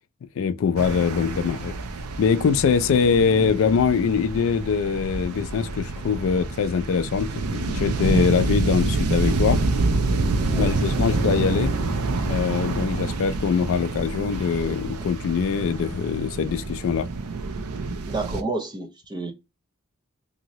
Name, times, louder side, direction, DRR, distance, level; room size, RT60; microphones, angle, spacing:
voice 1, 0.4-1.7 2.2-9.6 10.5-11.7 12.2-17.1, left 6 dB, 60° left, 0.3 m, -23 dB
sound 1, 0.8-18.4, right 3 dB, 80° right, 0.4 m, -27 dB
sound 2, 8.1-14.5, equal, 5° left, 1.3 m, -38 dB
voice 2, 10.5-11.0 18.1-19.3, right 3 dB, 20° right, 0.5 m, -31 dB
2.8 x 2.7 x 2.9 m
head